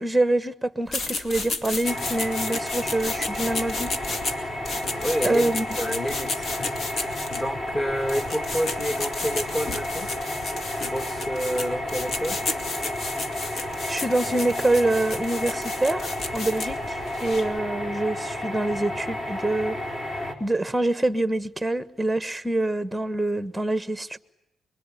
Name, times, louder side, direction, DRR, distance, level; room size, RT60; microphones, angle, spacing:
voice 1, 0.0-4.2 5.2-5.7 13.9-19.8 20.4-24.2, right 2 dB, 5° right, 1.3 m, -25 dB
sound 1, 0.9-17.6, left 3 dB, 60° left, 2.5 m, -33 dB
sound 2, 1.8-20.3, left 1 dB, 35° left, 4.3 m, -32 dB
voice 2, 4.9-10.1 10.8-12.4, equal, 20° left, 2.5 m, -29 dB
25.0 x 23.0 x 9.9 m
cardioid pair, 105°, 0 cm